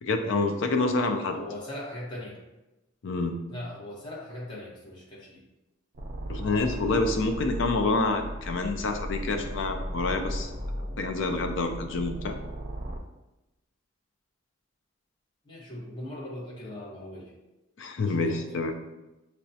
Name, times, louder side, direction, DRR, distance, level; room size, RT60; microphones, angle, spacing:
voice 1, 0.0-1.4 3.0-3.4 6.3-10.5 11.0-12.4 17.8-18.7, left 3 dB, 70° left, 5 dB, 0.4 m, -27 dB
voice 2, 1.3-2.4 3.5-5.4 15.4-17.3 18.0-18.4, left 1 dB, 25° left, -6 dB, 1.0 m, -40 dB
sound 1, 5.9-13.0, equal, 45° right, 0.5 m, -36 dB
5.8 x 2.2 x 2.7 m, 0.99 s
head